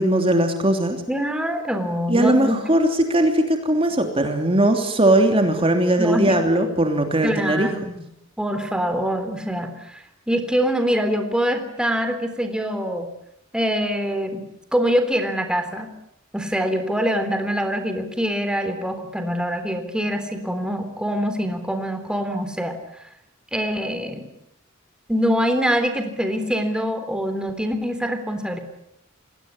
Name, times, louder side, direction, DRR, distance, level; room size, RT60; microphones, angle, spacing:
voice 1, 0.0-1.0 2.1-7.7, right 1 dB, 30° right, 5 dB, 3.2 m, -19 dB
voice 2, 1.1-2.6 6.0-6.4 7.2-8.0 8.4-13.1 13.5-14.5 14.7-15.9 16.3-22.8 23.5-24.3 25.1-28.6, equal, 5° right, 6 dB, 3.5 m, -24 dB
28.5 x 21.5 x 9.7 m, 0.77 s
head